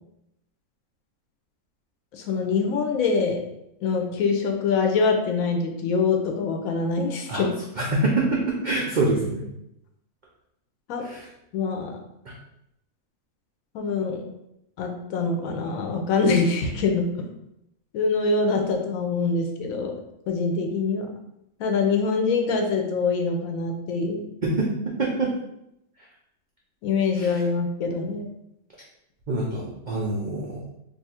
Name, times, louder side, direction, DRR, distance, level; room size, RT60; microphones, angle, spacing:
voice 1, 2.1-3.4 3.8-7.5 10.9-11.0 11.5-12.0 13.7-14.2 14.8-17.1 17.9-19.9 20.3-21.1 21.6-24.3 26.8-28.3, left 4 dB, 70° left, 3 dB, 1.0 m, -24 dB
voice 2, 7.8-9.4 11.0-11.3 12.3-12.4 24.4-25.3 27.1-27.4 29.3-30.6, right 2 dB, 85° right, -4 dB, 0.4 m, -25 dB
2.6 x 2.4 x 4.2 m, 0.81 s
omnidirectional pair, 1.6 m